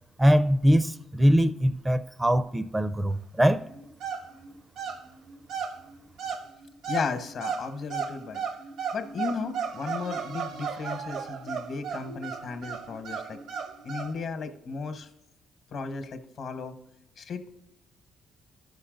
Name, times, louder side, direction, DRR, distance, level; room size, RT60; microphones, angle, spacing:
voice 1, 0.2-3.6, equal, 10° right, 0.4 m, -22 dB
sound 1, 3.6-14.1, right 6 dB, 75° right, 0.8 m, -36 dB
voice 2, 6.9-8.4 8.9-13.4 13.8-15.1 15.7-16.8 17.2-17.6, left 4 dB, 60° left, 1.0 m, -35 dB
13.0 x 5.6 x 3.8 m
cardioid pair, 95°, 0 cm